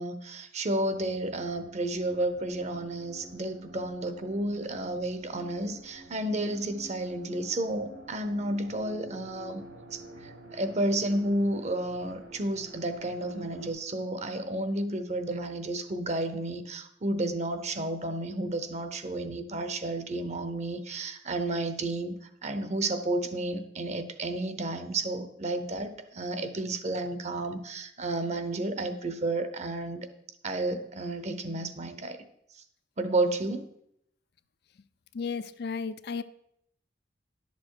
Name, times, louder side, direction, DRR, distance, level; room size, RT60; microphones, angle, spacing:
voice 1, 0.0-9.6 9.9-30.1 30.4-32.2 33.0-33.7, right 2 dB, 40° right, 10 dB, 0.9 m, -31 dB
sound 1, 0.9-13.7, right 2 dB, 65° right, 2.2 m, -49 dB
voice 2, 35.1-36.2, left 5 dB, 60° left, 12 dB, 0.5 m, -33 dB
11.0 x 6.9 x 4.8 m, 0.74 s
head